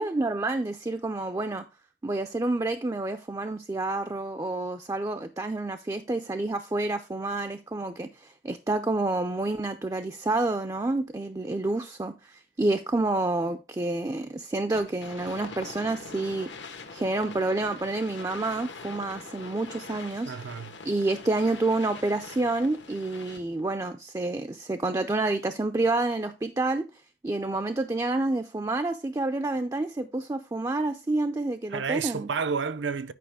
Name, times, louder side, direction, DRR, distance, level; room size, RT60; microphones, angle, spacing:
voice 1, 0.0-1.6 2.0-16.5 16.9-20.3 20.8-26.9 27.2-32.3, right 2 dB, 20° right, 0.3 m, -28 dB
sound 1, 14.7-23.6, left 4 dB, 85° left, 1.3 m, -43 dB
voice 2, 20.3-20.7 31.7-33.1, right 5 dB, 85° right, 0.6 m, -30 dB
9.3 x 5.2 x 3.5 m
head